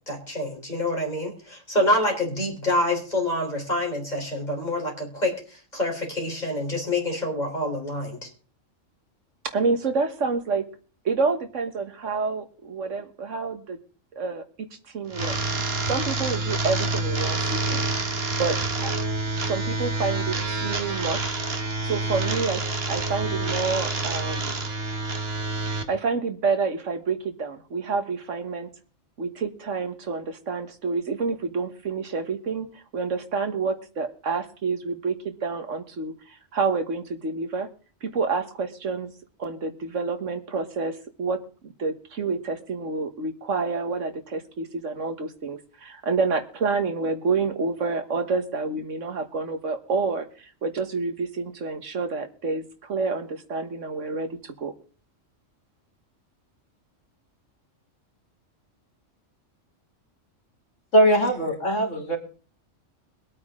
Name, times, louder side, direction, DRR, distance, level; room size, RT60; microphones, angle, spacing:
voice 1, 0.1-5.4 5.7-8.3, left 1 dB, 35° left, 0 dB, 4.1 m, -26 dB
voice 2, 9.5-10.6 11.1-13.8 14.2-14.4 14.9-15.4 15.9-17.8 18.4-18.6 18.8-18.9 19.4-21.5 21.8-24.6 25.9-28.7 29.2-37.7 38.0-39.1 39.4-54.7, right 4 dB, 70° right, 7 dB, 1.8 m, -28 dB
sound 1, 15.1-25.8, right 2 dB, 50° right, 1.7 m, -27 dB
voice 3, 60.9-62.2, right 1 dB, 70° left, 2 dB, 3.5 m, -20 dB
22.5 x 8.7 x 3.7 m, 0.40 s
omnidirectional pair, 1.3 m